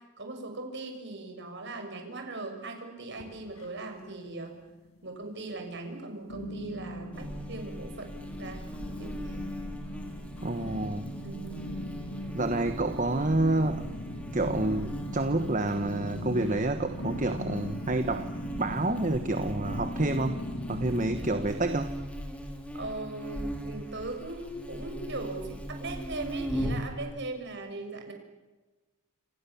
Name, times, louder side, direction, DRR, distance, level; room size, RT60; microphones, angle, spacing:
voice 1, 0.2-4.6 5.0-8.1 8.4-8.7 9.0-9.6 11.2-11.7 22.7-28.1, right 2 dB, 50° right, 4 dB, 6.4 m, -39 dB
sound 1, 3.1-4.1 4.3-5.0 5.5-5.6 6.3-21.5, equal, 75° left, 6.1 m, -39 dB
Buzz, 7.1-26.9, equal, 5° left, 3.9 m, -39 dB
voice 2, 10.4-11.0 12.3-13.9 14.3-18.3 18.6-20.4 20.7-21.9, right 2 dB, 35° right, 8 dB, 1.2 m, -28 dB
29.0 x 28.0 x 7.2 m, 1.2 s
head